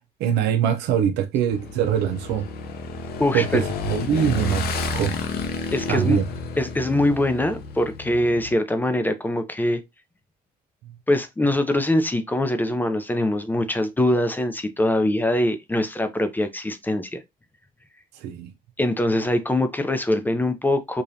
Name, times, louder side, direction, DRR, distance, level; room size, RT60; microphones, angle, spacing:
voice 1, 0.2-2.5 3.3-4.6 4.9-5.2 5.9-6.3 18.2-18.5, right 8 dB, 85° right, 0.7 m, -23 dB
Motorcycle / Engine, 1.5-8.5, left 3 dB, 65° left, 0.8 m, -31 dB
voice 2, 3.2-3.6 5.7-6.2 6.6-9.8 11.1-17.2 18.8-21.0, left 1 dB, 10° left, 0.5 m, -23 dB
4.9 x 2.5 x 2.7 m
cardioid pair, 110°, 17 cm